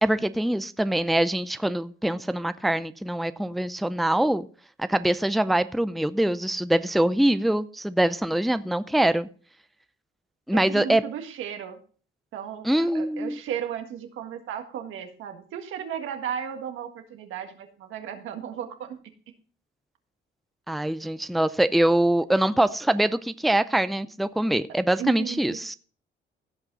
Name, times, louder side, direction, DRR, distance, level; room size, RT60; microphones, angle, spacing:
voice 1, 0.0-4.5 4.8-9.3 10.5-11.0 12.6-13.4 20.7-25.8, right 1 dB, ahead, 0.5 m, -24 dB
voice 2, 10.5-11.8 12.3-19.0 25.0-25.6, right 9 dB, 85° right, 1.7 m, -35 dB
16.5 x 5.8 x 4.0 m
cardioid pair, 90°, 20 cm